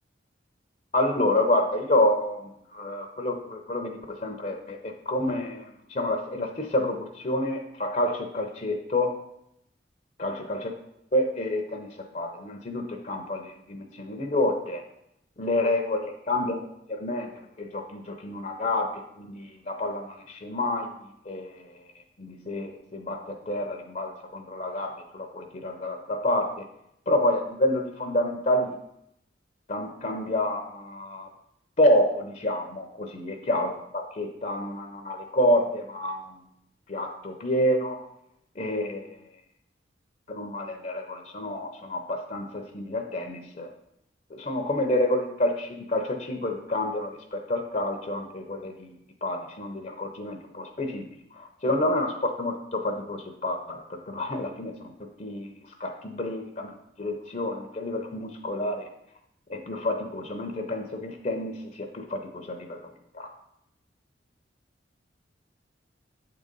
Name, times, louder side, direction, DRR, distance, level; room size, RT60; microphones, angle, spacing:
voice 1, 0.9-9.1 10.2-10.7 11.1-11.9 12.1-14.8 15.4-17.3 17.6-21.0 21.2-21.7 22.2-26.7 27.1-28.7 29.7-31.3 31.8-36.4 36.9-38.0 38.6-39.2 40.3-43.7 44.3-48.9 49.2-54.7 55.0-58.9 59.5-62.8 63.1-63.3, left 1 dB, 40° left, 4 dB, 0.6 m, -28 dB
7.8 x 3.8 x 5.2 m, 0.79 s
head